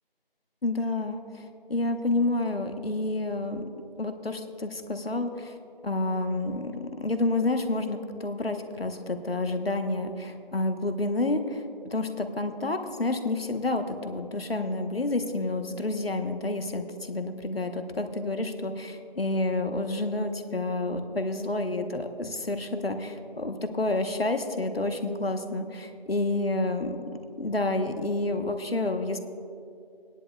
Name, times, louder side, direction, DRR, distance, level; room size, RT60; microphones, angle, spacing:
voice 1, 0.6-3.7 4.0-5.5 5.8-11.6 11.9-27.0 27.4-29.2, left 2 dB, 80° left, 7 dB, 1.0 m, -29 dB
18.0 x 10.5 x 2.2 m, 2.5 s
figure-of-eight pair, 175°, 29 cm